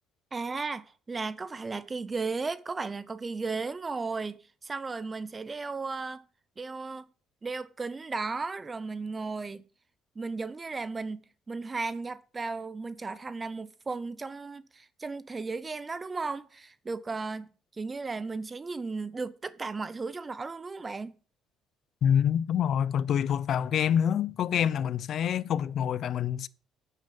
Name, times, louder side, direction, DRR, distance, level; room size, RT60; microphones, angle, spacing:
voice 1, 0.3-6.2 6.6-7.1 7.4-9.6 10.2-17.5 17.8-21.1, right 4 dB, 20° right, 0.6 m, -35 dB
voice 2, 22.0-26.5, left 9 dB, 55° left, 0.5 m, -26 dB
9.1 x 8.3 x 5.3 m
cardioid pair, 125°, 0 cm